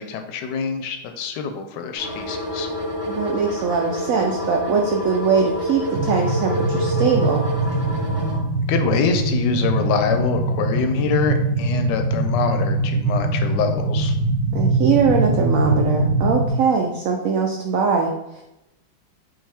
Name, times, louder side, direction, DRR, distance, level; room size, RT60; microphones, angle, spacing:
voice 1, 0.0-2.7 8.7-14.1, left 5 dB, 75° left, 6 dB, 1.1 m, -25 dB
sound 1, 1.9-8.4, equal, 25° right, 1.3 m, -28 dB
voice 2, 3.1-7.4 14.5-18.4, right 5 dB, 85° right, 2 dB, 0.7 m, -21 dB
sound 2, 5.9-16.5, right 2 dB, 65° right, 1.3 m, -22 dB
5.5 x 2.6 x 3.4 m, 0.89 s
omnidirectional pair, 2.0 m